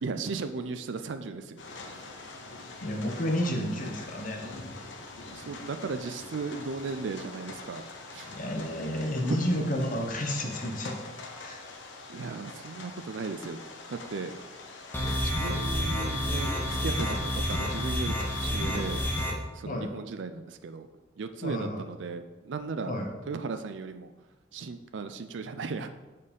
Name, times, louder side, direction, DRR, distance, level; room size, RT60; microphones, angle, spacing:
voice 1, 0.0-1.6 1.9-2.0 5.3-7.8 8.1-8.3 8.9-9.0 12.1-13.6 13.9-14.4 15.2-19.0 19.5-20.9 21.2-23.0 23.2-24.1 24.5-26.0, right 4 dB, 75° right, 9 dB, 0.4 m, -36 dB
sound 1, 1.6-19.3, left 3 dB, 75° left, 1.0 m, -44 dB
voice 2, 2.8-4.4 8.3-11.0 11.4-11.6 19.7-19.9 21.4-21.8 22.9-23.1, equal, 45° left, 3 dB, 1.1 m, -31 dB
sound 2, 14.9-19.3, equal, 10° left, 1.1 m, -29 dB
6.7 x 5.2 x 5.4 m, 1.2 s
head